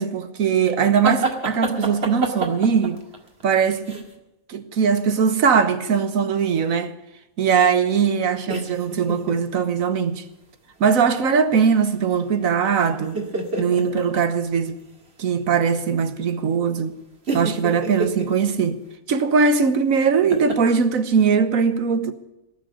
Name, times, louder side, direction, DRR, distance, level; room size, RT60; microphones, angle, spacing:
voice 1, 0.0-3.0 3.4-4.0 4.5-6.9 7.4-10.2 10.8-13.2 13.6-14.8 15.2-17.0 17.3-18.8 19.1-22.1, right 6 dB, 80° right, 1.5 m, -20 dB
sound 1, 1.0-4.1 8.5-9.4 9.8-10.1 11.5-12.1 12.4-14.2 14.7-14.8 16.3-16.4 17.2-18.3 20.3-20.6, right 3 dB, 50° right, 2.2 m, -28 dB
18.5 x 6.4 x 9.9 m
omnidirectional pair, 1.4 m